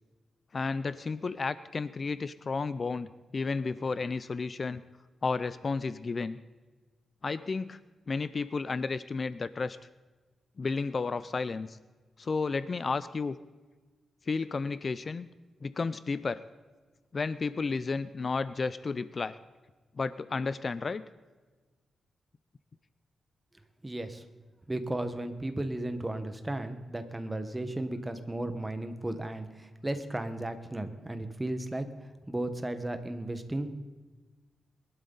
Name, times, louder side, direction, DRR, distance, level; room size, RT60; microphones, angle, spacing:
voice 1, 0.5-4.8 5.2-6.4 7.2-7.8 8.1-9.8 10.6-11.8 12.2-13.4 14.3-15.3 15.6-16.4 17.1-19.4 20.0-21.0, left 4 dB, 40° left, 15 dB, 0.4 m, -32 dB
voice 2, 23.8-24.2 24.7-31.9 32.3-33.7, right 1 dB, 15° right, 8 dB, 1.3 m, -35 dB
21.5 x 12.0 x 4.0 m, 1.3 s
cardioid pair, 100°, 0 cm